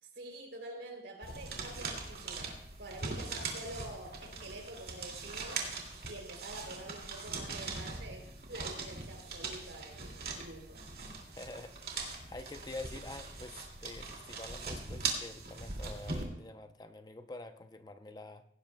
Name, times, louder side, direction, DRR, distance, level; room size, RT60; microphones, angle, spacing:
voice 1, 0.0-5.6 6.0-10.8, right 1 dB, 80° right, 2 dB, 3.2 m, -47 dB
sound 1, 1.2-16.2, right 4 dB, 55° right, 2.3 m, -41 dB
voice 2, 11.3-18.4, left 2 dB, 25° left, 9 dB, 0.6 m, -47 dB
17.0 x 16.5 x 2.2 m, 0.72 s
head